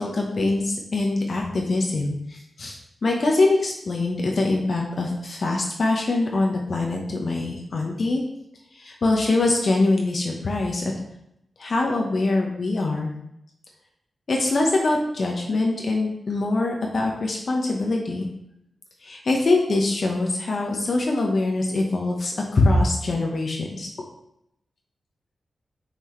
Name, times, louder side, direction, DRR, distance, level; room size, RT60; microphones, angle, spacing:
voice 1, 0.0-2.8 3.0-8.2 8.7-10.8 11.6-13.1 14.3-18.3 19.0-23.9, left 2 dB, 60° left, 0 dB, 1.0 m, -23 dB
5.7 x 5.1 x 3.2 m, 0.79 s
cardioid pair, 75°, 0 cm